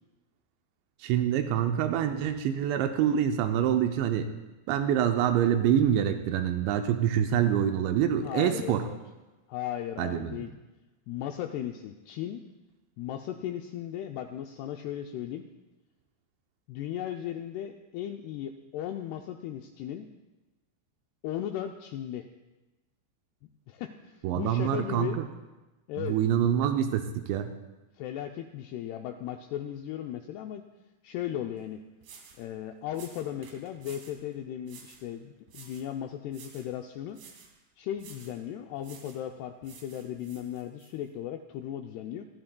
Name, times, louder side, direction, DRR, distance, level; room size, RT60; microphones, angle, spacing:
voice 1, 1.0-4.3 4.7-8.8 10.0-10.4 24.2-25.2 26.0-27.5, right 9 dB, 85° right, 6 dB, 2.9 m, -26 dB
voice 2, 8.2-9.0 9.5-10.5 11.1-12.4 13.0-15.5 16.7-20.1 21.2-22.3 23.7-25.2 25.9-26.2 27.9-30.6 31.0-31.8 32.4-37.2 37.8-42.3, left 11 dB, 85° left, 5 dB, 2.3 m, -36 dB
sound 1, 31.6-31.7 32.0-32.4 32.9-34.2 34.6-35.1 35.5-35.9 36.3-36.7 37.1-37.5 38.0-38.4 38.8-39.2 39.6-40.9, right 6 dB, 65° right, 3.0 m, -52 dB
26.0 x 11.0 x 2.2 m, 1.1 s
omnidirectional pair, 5.2 m